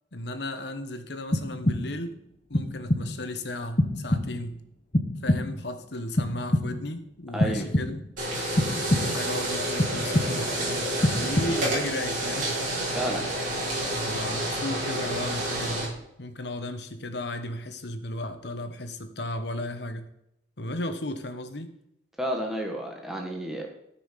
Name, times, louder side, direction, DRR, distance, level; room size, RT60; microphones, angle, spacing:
voice 1, 0.1-2.2 2.5-4.6 5.2-8.0 8.7-12.5 13.9-20.1 20.6-21.7, left 1 dB, 65° left, 8 dB, 1.2 m, -35 dB
sound 1, 1.3-2.1 2.5-3.3 3.8-4.6 4.9-5.7 6.2-7.0 7.4-8.2 8.6-9.4 9.8-10.6 11.0-11.8, left 1 dB, 30° left, 0.9 m, -27 dB
voice 2, 7.3-7.7 12.9-13.3 22.2-23.7, equal, ahead, 0 dB, 1.3 m, -31 dB
sound 2, 8.2-15.8, right 1 dB, 45° right, 4.8 m, -29 dB
13.5 x 5.9 x 5.8 m, 0.78 s
head